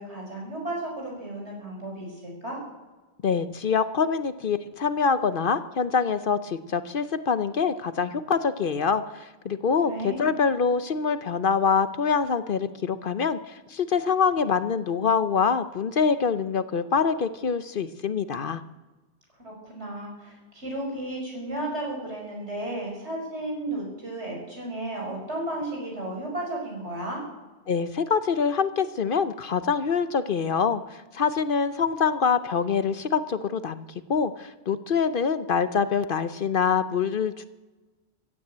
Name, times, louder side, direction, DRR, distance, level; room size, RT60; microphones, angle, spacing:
voice 1, 0.0-2.6 9.8-10.3 19.4-27.2, right 1 dB, 75° right, -1 dB, 6.2 m, -33 dB
voice 2, 3.2-18.6 27.7-33.8 34.1-37.4, left 6 dB, 55° left, 12 dB, 0.8 m, -25 dB
15.5 x 9.9 x 8.5 m, 1.2 s
omnidirectional pair, 1.2 m